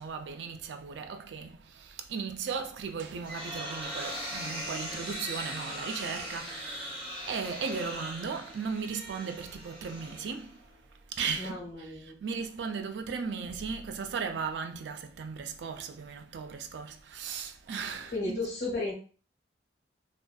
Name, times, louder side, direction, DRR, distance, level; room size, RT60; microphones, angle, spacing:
voice 1, 0.0-10.7 11.1-18.4, right 5 dB, 75° right, 0.4 m, -37 dB
sound 1, 2.9-10.7, equal, 35° right, 1.2 m, -40 dB
voice 2, 11.4-12.1 18.1-18.9, left 2 dB, 60° left, 1.0 m, -34 dB
2.5 x 2.4 x 2.2 m
head